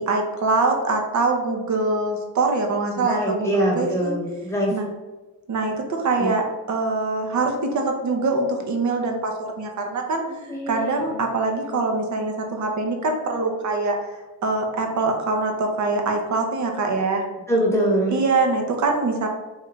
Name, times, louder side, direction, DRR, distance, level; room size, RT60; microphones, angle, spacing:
voice 1, 0.0-4.1 4.7-4.9 5.5-13.9 14.4-17.2 18.1-19.3, right 3 dB, 35° right, 3 dB, 0.8 m, -24 dB
voice 2, 3.0-4.7 6.2-6.3 10.3-11.2 11.6-11.9 17.5-18.2, right 1 dB, 5° left, -3 dB, 1.2 m, -24 dB
3.7 x 2.7 x 3.5 m, 1.2 s
supercardioid pair, 90°, 48 cm